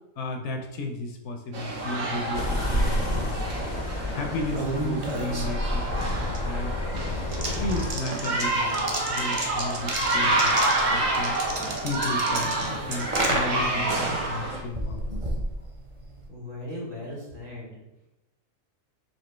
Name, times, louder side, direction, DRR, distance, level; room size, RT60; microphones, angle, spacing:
voice 1, 0.2-3.7 4.1-6.7 7.5-10.6 10.9-11.4 11.8-15.5, left 2 dB, 70° left, 3 dB, 0.9 m, -34 dB
sound 1, 1.5-14.6, right 2 dB, 80° right, 1.3 m, -28 dB
sound 2, 2.2-16.3, right 1 dB, 40° right, 0.5 m, -32 dB
sound 3, 2.3-7.9, left 2 dB, 50° left, 0.5 m, -32 dB
voice 2, 16.3-17.8, left 1 dB, 55° right, -4 dB, 1.7 m, -38 dB
4.3 x 2.6 x 4.2 m, 0.95 s
omnidirectional pair, 1.3 m